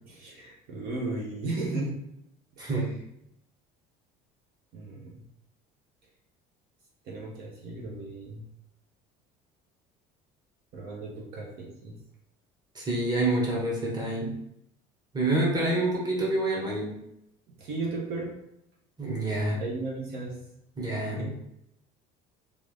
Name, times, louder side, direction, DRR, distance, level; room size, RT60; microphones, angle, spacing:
voice 1, 0.0-2.0 2.6-2.7 4.7-5.2 7.0-8.4 10.7-11.9 17.6-18.4 19.6-20.4 21.1-21.3, right 2 dB, 60° right, -2 dB, 1.0 m, -35 dB
voice 2, 2.6-2.9 12.7-14.3 15.1-16.9 19.0-19.6 20.8-21.3, right 2 dB, 20° right, -3 dB, 1.2 m, -27 dB
3.3 x 2.6 x 3.3 m, 0.79 s
cardioid pair, 115°, 17 cm